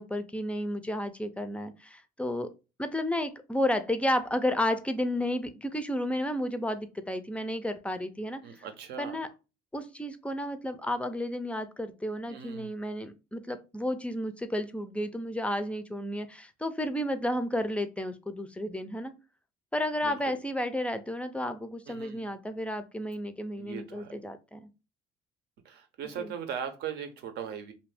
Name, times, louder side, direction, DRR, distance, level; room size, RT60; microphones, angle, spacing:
voice 1, 0.0-2.5 2.8-8.6 9.0-9.3 9.7-19.1 19.7-24.7 26.2-26.3, left 1 dB, 5° left, 9 dB, 0.4 m, -32 dB
voice 2, 8.4-9.2 12.3-12.7 20.0-20.3 21.9-22.3 23.6-24.1 25.6-27.7, right 8 dB, 75° right, 7 dB, 0.7 m, -39 dB
2.7 x 2.5 x 3.3 m, 0.29 s
cardioid pair, 110°, 17 cm